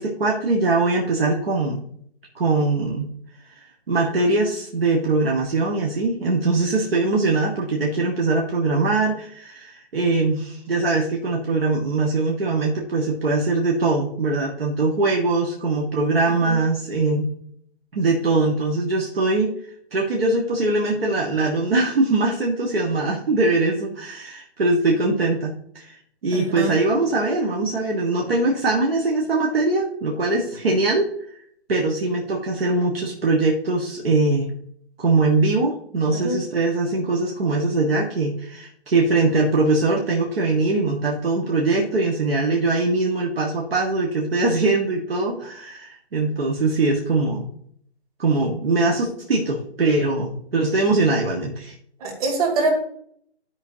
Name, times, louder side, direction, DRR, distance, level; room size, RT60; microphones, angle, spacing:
voice 1, 0.0-1.8 2.3-3.0 3.9-17.3 17.9-19.5 19.9-25.9 26.2-31.1 31.7-34.5 35.0-47.5 48.2-51.7, right 3 dB, 60° right, -2 dB, 1.6 m, -22 dB
voice 2, 16.3-16.6 26.3-26.8 36.1-36.4 52.0-52.7, right 3 dB, 35° right, 1 dB, 2.6 m, -25 dB
14.0 x 5.0 x 2.8 m, 0.65 s
figure-of-eight pair, 150°, 33 cm